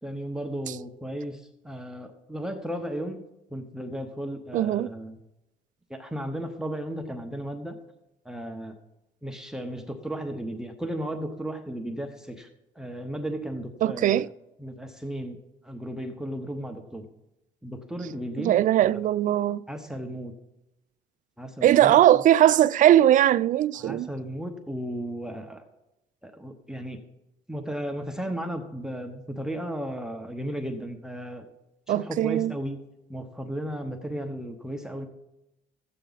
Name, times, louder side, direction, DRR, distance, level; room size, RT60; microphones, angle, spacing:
voice 1, 0.0-3.2 3.5-5.2 5.9-7.8 8.2-8.8 9.2-12.5 12.8-14.3 14.6-15.4 15.6-17.1 17.6-19.0 19.7-20.3 21.4-22.2 23.7-25.6 26.2-27.0 27.5-31.5 31.9-32.8 33.1-35.1, right 1 dB, 5° right, 0.9 m, -35 dB
voice 2, 4.5-4.9 13.8-14.3 18.4-19.6 21.6-24.1 31.9-32.5, right 12 dB, 50° right, 0.4 m, -20 dB
13.5 x 8.3 x 4.0 m
cardioid pair, 110°, 17 cm